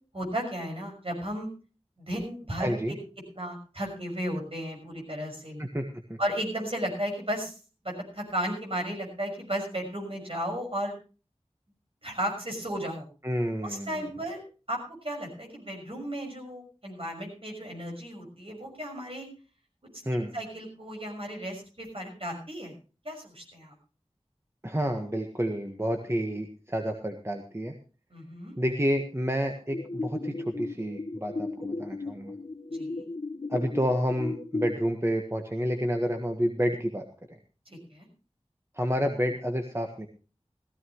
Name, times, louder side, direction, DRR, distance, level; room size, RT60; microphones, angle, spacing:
voice 1, 0.1-1.5 2.0-2.7 3.4-5.6 6.2-7.5 7.8-10.9 12.0-13.0 13.6-14.4 14.7-19.3 19.9-22.7 23.0-23.7 28.1-28.5 32.7-33.0 37.7-38.1, equal, 55° right, 1 dB, 6.1 m, -34 dB
voice 2, 2.6-2.9 5.6-6.2 13.2-14.0 20.0-20.3 24.6-27.7 28.6-32.3 33.5-37.0 38.7-40.1, equal, 25° right, 3 dB, 1.5 m, -29 dB
sound 1, 29.7-34.7, left 3 dB, 65° left, 1.2 m, -35 dB
16.5 x 15.0 x 3.1 m, 0.36 s
wide cardioid pair, 40°, 11 cm